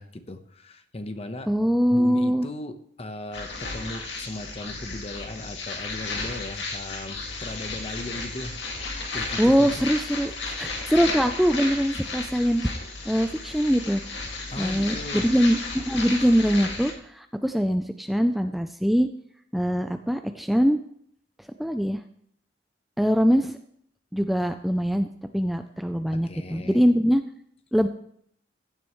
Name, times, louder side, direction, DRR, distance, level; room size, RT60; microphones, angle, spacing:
voice 1, 0.0-1.5 1.9-9.8 10.5-10.7 14.5-15.3 26.1-26.8, left 1 dB, 35° left, 8 dB, 1.0 m, -37 dB
voice 2, 1.5-2.5 9.4-12.7 13.1-14.0 14.6-19.1 19.5-20.8 21.6-22.0 23.0-23.6 24.1-25.1 25.3-27.2 27.7-27.9, equal, ahead, 7 dB, 0.4 m, -23 dB
sound 1, 3.3-16.9, left 3 dB, 75° left, 2.1 m, -34 dB
16.0 x 12.5 x 3.1 m, 0.68 s
head